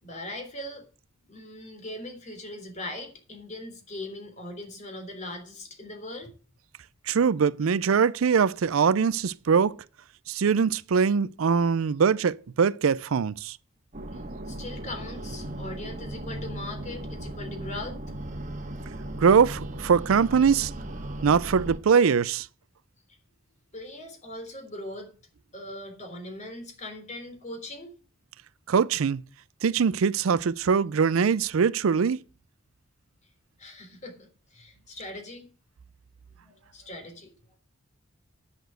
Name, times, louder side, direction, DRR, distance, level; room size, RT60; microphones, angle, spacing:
voice 1, 0.0-0.8 1.2-6.3 14.1-18.0 23.7-25.1 25.5-27.9 33.6-35.5 36.4-37.6, left 1 dB, 35° left, 3.6 m, -40 dB
voice 2, 7.1-9.7 10.3-13.6 19.2-20.7 21.2-22.5 28.7-29.2 29.6-32.2, right 6 dB, 85° right, 0.4 m, -22 dB
sound 1, 13.9-21.8, right 1 dB, 35° right, 1.6 m, -37 dB
10.0 x 7.1 x 7.6 m
head